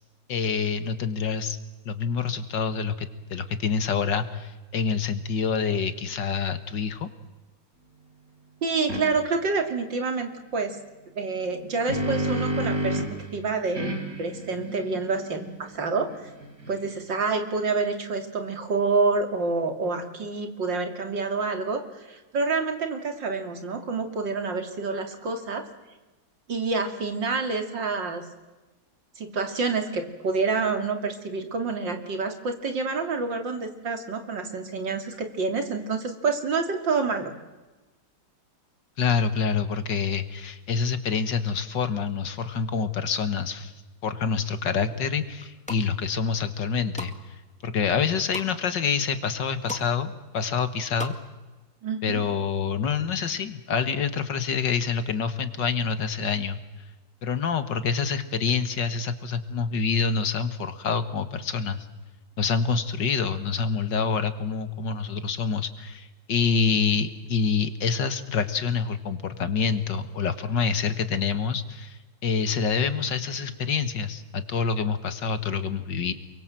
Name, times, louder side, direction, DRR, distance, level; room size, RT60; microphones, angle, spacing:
voice 1, 0.3-1.6 1.9-7.1 39.0-43.7 44.0-47.1 47.6-51.1 52.0-56.6 57.2-61.9 62.4-76.1, left 6 dB, 75° left, 11 dB, 2.2 m, -27 dB
voice 2, 8.6-10.8 11.2-16.3 16.7-25.7 26.5-28.3 29.2-37.3 51.8-52.2, right 4 dB, 80° right, 6 dB, 3.4 m, -28 dB
sound 1, 8.9-9.0 11.4-13.2 13.7-17.1, right 1 dB, 50° right, 5.3 m, -31 dB
sound 2, 45.4-45.8 46.4-47.2 47.6-48.5 49.0-49.1 49.3-49.9 50.2-51.2 51.5-51.6, equal, 5° left, 1.8 m, -38 dB
28.5 x 23.5 x 7.7 m, 1.2 s
omnidirectional pair, 2.0 m